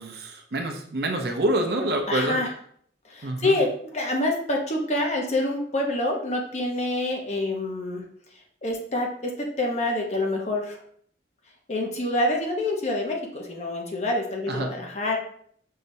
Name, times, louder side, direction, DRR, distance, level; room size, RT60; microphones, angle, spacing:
voice 1, 0.0-2.4 3.2-3.6 14.5-14.7, right 1 dB, 55° right, 4 dB, 0.6 m, -27 dB
voice 2, 2.1-2.5 3.0-8.0 8.6-10.8 11.7-15.2, left 1 dB, 35° left, 1 dB, 0.7 m, -27 dB
5.6 x 3.2 x 2.7 m, 0.62 s
head